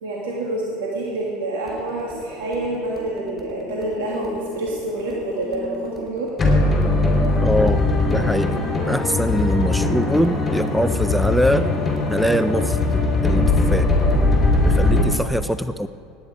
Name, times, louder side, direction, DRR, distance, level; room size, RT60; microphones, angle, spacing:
voice 1, 0.0-6.3 14.6-15.1, right 1 dB, 90° right, -3 dB, 2.0 m, -27 dB
sound 1, 1.7-15.0, left 2 dB, 15° left, 3.7 m, -21 dB
voice 2, 7.4-7.8 8.1-8.5 8.9-11.7 12.1-13.9 14.6-15.9, equal, ahead, 12 dB, 0.4 m, -23 dB
17.5 x 9.6 x 4.9 m, 2.3 s
supercardioid pair, 105°, 0 cm